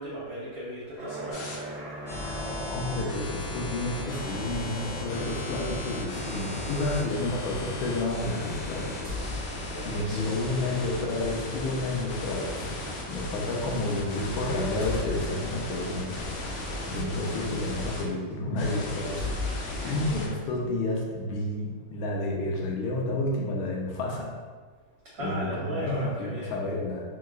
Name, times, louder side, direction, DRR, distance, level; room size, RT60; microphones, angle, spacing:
voice 1, 0.0-1.6 9.7-10.4 19.8-20.1 25.1-26.6, right 1 dB, 70° right, -7 dB, 1.2 m, -37 dB
Aircraft, 1.0-7.4, right 1 dB, 45° right, 1.2 m, -41 dB
sound 1, 1.3-1.6 2.1-18.0 18.6-20.3, left 1 dB, 70° left, 1.1 m, -36 dB
voice 2, 2.7-9.2 9.8-12.7 13.1-16.3 16.9-19.2 19.8-24.3 25.2-27.0, left 2 dB, 90° left, -1 dB, 1.4 m, -30 dB
sound 2, 6.5-6.6 8.5-10.0 10.9-11.1 13.0-13.1 14.0-14.2 14.4-17.0 17.7-17.8 18.3-18.4 19.0-20.8, left 3 dB, 40° left, 0.7 m, -37 dB
3.5 x 2.8 x 2.3 m, 1.5 s
omnidirectional pair, 2.2 m